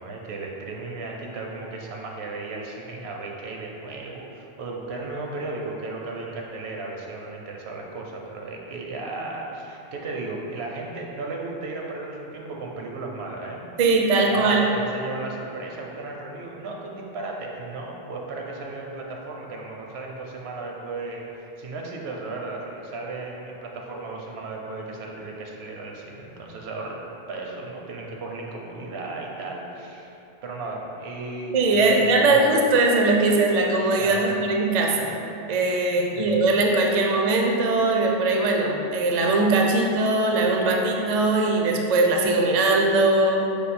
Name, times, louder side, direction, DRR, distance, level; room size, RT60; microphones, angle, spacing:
voice 1, 0.0-13.6 14.2-30.1 30.4-32.4 34.0-34.4 36.0-36.4, right 3 dB, 85° right, -1 dB, 0.9 m, -35 dB
voice 2, 13.8-14.6 31.5-35.1 35.5-43.4, right 2 dB, 55° right, 1 dB, 0.4 m, -20 dB
5.0 x 2.3 x 4.2 m, 2.9 s
omnidirectional pair, 1.0 m